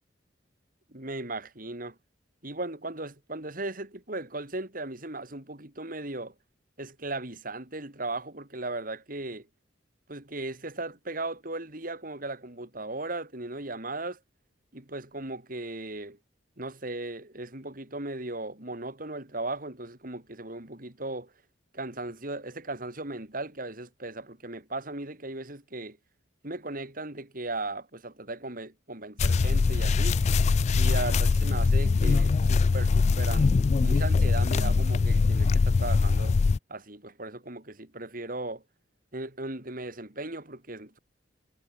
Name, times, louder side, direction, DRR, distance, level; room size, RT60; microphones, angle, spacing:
voice 1, 0.9-2.0 2.4-6.3 6.8-9.5 10.1-14.2 14.7-16.2 16.6-21.3 21.7-26.0 26.4-30.2 30.8-36.4 36.7-38.6 39.1-41.0, right 2 dB, 50° right, 4.0 m, -37 dB
sound 1, 29.2-36.6, left 4 dB, 40° left, 0.3 m, -23 dB
head